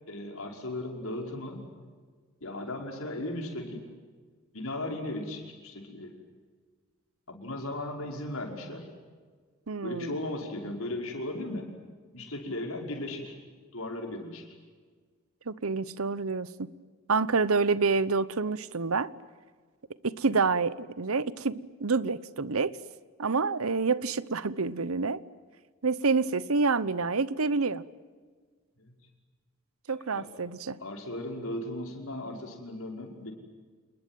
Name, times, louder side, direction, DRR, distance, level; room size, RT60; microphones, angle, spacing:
voice 1, 0.1-1.7 2.4-3.8 4.5-6.1 7.3-8.9 9.8-11.7 12.1-13.4 13.7-14.5 28.8-28.9 29.9-30.3 30.8-33.3, left 1 dB, 70° left, 2 dB, 5.5 m, -36 dB
voice 2, 9.7-10.2 15.5-16.7 17.1-19.1 20.0-22.8 23.2-25.2 25.8-27.8 29.9-30.8, right 4 dB, 75° right, 18 dB, 0.9 m, -28 dB
28.0 x 21.0 x 9.2 m, 1.5 s
head